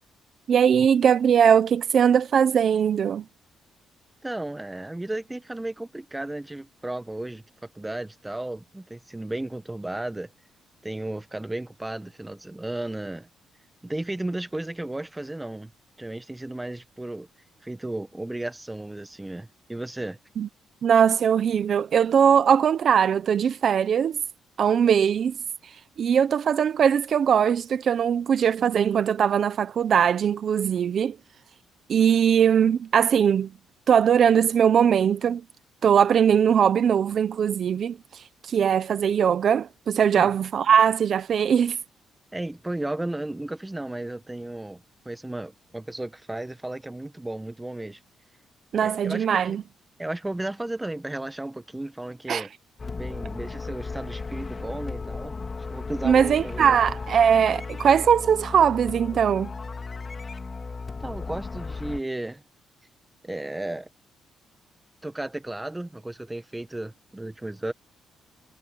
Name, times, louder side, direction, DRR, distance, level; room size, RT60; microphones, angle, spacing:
voice 1, 0.5-3.2 20.4-20.5 20.8-24.2 24.6-25.3 26.0-31.2 31.9-33.5 33.9-35.4 35.8-41.8 48.7-49.6 52.3-52.5 56.0-59.5, right 8 dB, 55° right, 1.0 m, -20 dB
voice 2, 4.2-7.4 7.7-10.3 10.8-13.3 13.8-15.7 16.0-17.3 17.6-20.2 40.1-40.3 42.3-48.0 48.8-49.6 50.0-52.5 53.0-55.3 55.7-56.8 61.0-62.4 63.2-63.9 65.0-67.7, right 1 dB, 10° right, 1.6 m, -34 dB
sound 1, 52.8-62.0, left 4 dB, 30° left, 2.4 m, -35 dB
cardioid pair, 90°, 0 cm